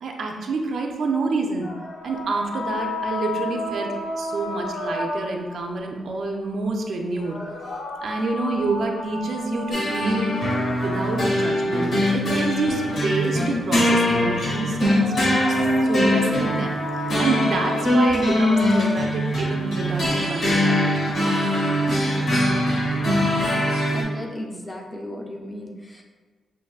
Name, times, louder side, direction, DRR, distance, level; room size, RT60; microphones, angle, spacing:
voice 1, 0.0-1.7 2.0-7.4 8.0-10.4 10.8-21.0, right 3 dB, 60° right, 2 dB, 0.4 m, -28 dB
sound 1, 1.6-5.6 7.1-11.6 14.8-19.3, left 1 dB, 90° left, 0.6 m, -32 dB
sound 2, 9.7-24.0, left 1 dB, 60° left, 1.0 m, -22 dB
voice 2, 23.9-26.0, left 1 dB, 20° left, 0 dB, 0.5 m, -35 dB
5.7 x 2.5 x 2.3 m, 1.4 s
wide cardioid pair, 160°, 0 cm